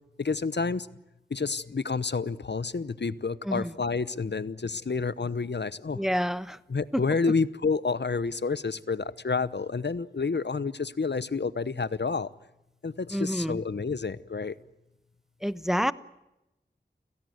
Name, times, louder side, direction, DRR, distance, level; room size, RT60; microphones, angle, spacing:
voice 1, 0.2-0.9 1.3-6.0 6.7-12.3 12.8-14.5, left 4 dB, 75° left, 1.0 m, -29 dB
voice 2, 5.9-6.6 6.9-7.0 13.1-13.6 15.4-15.9, equal, ahead, 1.0 m, -28 dB
30.0 x 17.0 x 9.4 m
wide cardioid pair, 50°, 18 cm